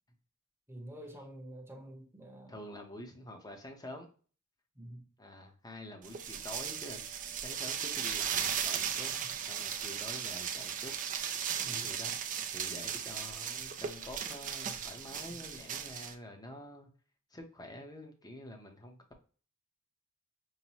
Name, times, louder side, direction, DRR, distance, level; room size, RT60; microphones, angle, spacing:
voice 1, 0.7-2.5 4.8-5.1 11.6-11.9 15.3-15.4, right 1 dB, 10° right, 0.9 m, -48 dB
voice 2, 2.5-4.1 5.2-7.1 7.3-9.1 9.4-10.9 11.6-12.1 12.5-16.9 17.3-19.0, left 1 dB, 20° left, 0.8 m, -47 dB
sound 1, 6.0-16.1, right 8 dB, 40° right, 0.5 m, -37 dB
5.5 x 2.2 x 3.0 m
head